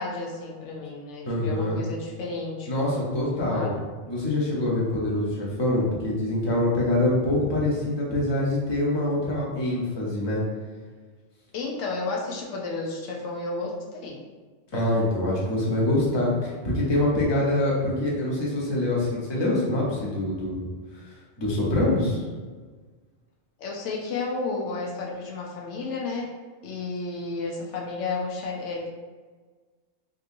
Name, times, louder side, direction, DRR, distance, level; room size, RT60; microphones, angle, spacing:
voice 1, 0.0-2.9 3.4-3.8 11.5-14.2 23.6-26.3 26.6-28.9, left 3 dB, 80° left, -1 dB, 0.9 m, -32 dB
voice 2, 1.3-1.8 2.7-3.7 4.0-10.4 14.7-20.7 21.4-22.2, left 1 dB, 25° left, -5 dB, 0.7 m, -25 dB
3.7 x 2.7 x 2.5 m, 1.4 s
omnidirectional pair, 1.2 m